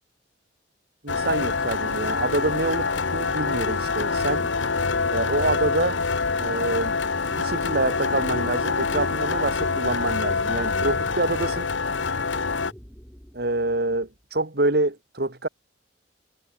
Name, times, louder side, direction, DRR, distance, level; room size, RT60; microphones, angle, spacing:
voice 1, 1.0-4.5 5.1-6.0 6.4-7.0 7.3-11.7 13.3-15.5, right 2 dB, 55° right, 2.0 m, -26 dB
sound 1, 1.1-12.7, left 4 dB, 85° left, 1.2 m, -25 dB
sound 2, 9.4-14.2, equal, 5° left, 4.6 m, -47 dB
head